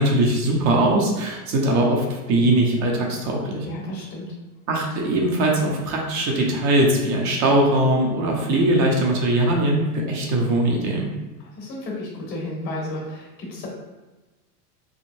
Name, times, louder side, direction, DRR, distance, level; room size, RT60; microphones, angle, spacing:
voice 1, 0.0-3.7 4.7-11.1, right 1 dB, 35° right, -1 dB, 0.7 m, -21 dB
voice 2, 3.6-4.2 11.4-13.7, left 1 dB, 80° left, -2 dB, 1.5 m, -32 dB
3.6 x 2.0 x 2.6 m, 1.2 s
supercardioid pair, 110°, 48 cm